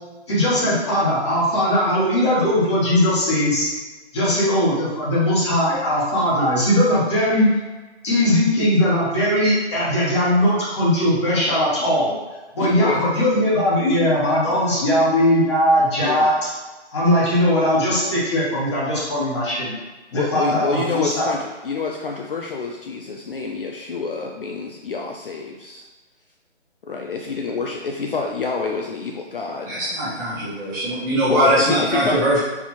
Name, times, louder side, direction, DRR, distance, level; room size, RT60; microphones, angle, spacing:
voice 1, 0.3-3.7 4.1-7.5 8.0-12.1 12.5-16.3 16.9-19.7 20.1-21.3, left 1 dB, 25° left, -7 dB, 1.2 m, -19 dB
voice 2, 12.6-13.1 16.0-16.3 20.1-25.8 26.8-29.9 31.3-32.4, left 4 dB, 50° left, 1 dB, 0.4 m, -27 dB
voice 3, 29.6-32.4, right 1 dB, 15° right, -10 dB, 1.1 m, -21 dB
4.5 x 2.7 x 4.2 m, 1.2 s
hypercardioid pair, 165°, 35 cm